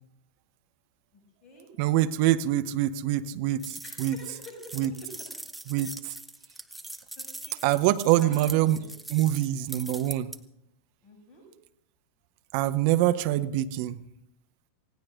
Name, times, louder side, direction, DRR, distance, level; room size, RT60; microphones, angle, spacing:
voice 1, 1.8-4.2 4.8-4.9 5.7-6.1 7.6-8.8 9.1-10.3 12.5-14.0, right 14 dB, 45° right, 11 dB, 0.7 m, -25 dB
sound 1, 3.6-10.4, right 1 dB, 5° right, 0.9 m, -42 dB
voice 2, 3.8-4.6 5.8-5.9 7.2-7.6 8.2-8.8 11.0-11.4, left 1 dB, 20° left, -2 dB, 6.6 m, -47 dB
27.5 x 17.5 x 2.6 m, 0.75 s
figure-of-eight pair, 90°, 0 cm